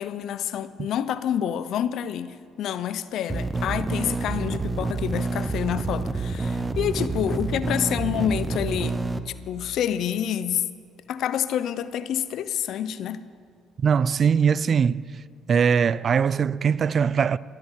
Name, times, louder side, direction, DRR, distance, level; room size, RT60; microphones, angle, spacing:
voice 1, 0.0-9.0 9.3-10.6 11.1-13.2, left 9 dB, 65° left, 0.7 m, -28 dB
sound 1, 3.3-9.2, right 3 dB, 20° right, 0.9 m, -28 dB
voice 2, 13.8-15.1 15.5-17.4, right 6 dB, 45° right, 0.4 m, -21 dB
22.0 x 7.8 x 7.3 m
hypercardioid pair, 60°, 0 cm